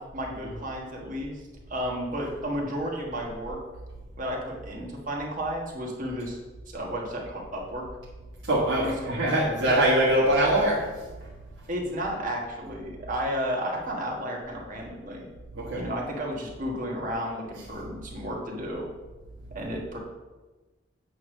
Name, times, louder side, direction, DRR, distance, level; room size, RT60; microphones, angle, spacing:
voice 1, 0.0-1.3 1.7-3.6 4.2-6.4 6.7-7.9 8.8-9.1 11.7-15.3 15.7-18.9 19.5-20.0, equal, 45° right, -1 dB, 1.5 m, -32 dB
voice 2, 8.5-10.8 15.6-15.8, right 1 dB, 70° right, -6 dB, 1.5 m, -23 dB
8.4 x 3.2 x 6.3 m, 1.2 s
head